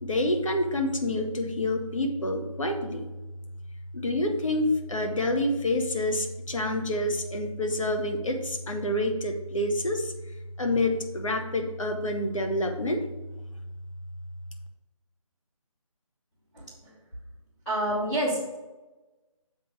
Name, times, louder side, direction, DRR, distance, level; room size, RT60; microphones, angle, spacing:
voice 1, 0.0-3.1 3.9-10.1 10.6-13.0, left 1 dB, 65° left, 4 dB, 1.4 m, -27 dB
voice 2, 17.6-18.6, right 1 dB, 5° left, -14 dB, 0.8 m, -28 dB
7.4 x 3.8 x 6.0 m, 1.1 s
figure-of-eight pair, 170°, 18 cm